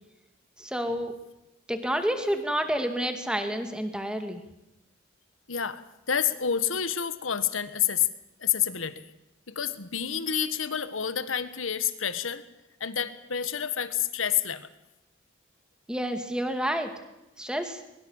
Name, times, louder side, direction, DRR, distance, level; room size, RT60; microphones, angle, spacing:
voice 1, 0.6-1.1 1.7-4.4 15.9-16.9 17.4-17.8, equal, 5° right, 6 dB, 2.2 m, -29 dB
voice 2, 5.5-8.1 8.4-9.1 9.5-12.4 12.8-14.7, left 8 dB, 85° left, 13 dB, 1.5 m, -29 dB
22.0 x 21.5 x 7.2 m, 0.93 s
head